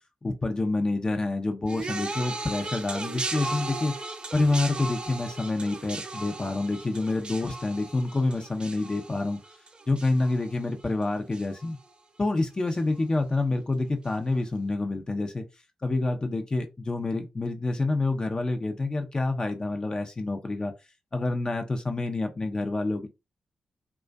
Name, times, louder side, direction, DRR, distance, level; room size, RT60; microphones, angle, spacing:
voice 1, 0.2-4.0 4.3-9.4 9.9-11.8 12.2-15.5 15.8-20.7 21.1-23.1, left 2 dB, 35° left, 0.5 m, -27 dB
sound 1, 1.7-11.0 11.3-11.9 12.7-12.8, right 3 dB, 40° right, 0.5 m, -37 dB
2.4 x 2.2 x 2.2 m
supercardioid pair, 40°, 2 cm